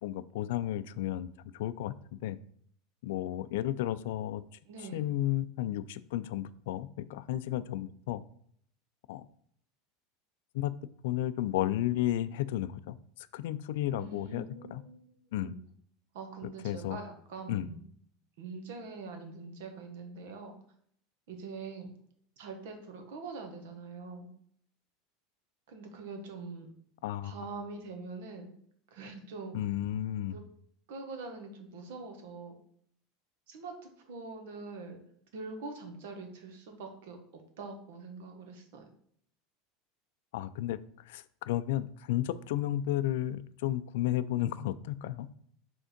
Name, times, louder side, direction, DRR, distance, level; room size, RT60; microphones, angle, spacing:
voice 1, 0.0-2.4 3.0-4.4 4.9-8.2 9.1-9.3 10.5-10.7 11.0-14.8 15.3-15.5 16.4-17.0 17.5-17.7 27.0-27.4 29.5-30.4 40.3-40.8 41.0-45.3, left 13 dB, 70° left, 15 dB, 0.3 m, -33 dB
voice 2, 4.7-5.0 14.0-15.6 16.1-17.8 18.4-20.5 21.3-21.9 22.4-24.3 25.7-26.7 27.2-28.5 28.9-29.5 30.3-30.4 30.9-32.5 33.5-35.0 35.3-38.8, right 4 dB, 70° right, 4 dB, 1.3 m, -44 dB
5.1 x 3.6 x 5.1 m, 0.63 s
supercardioid pair, 170°, 0 cm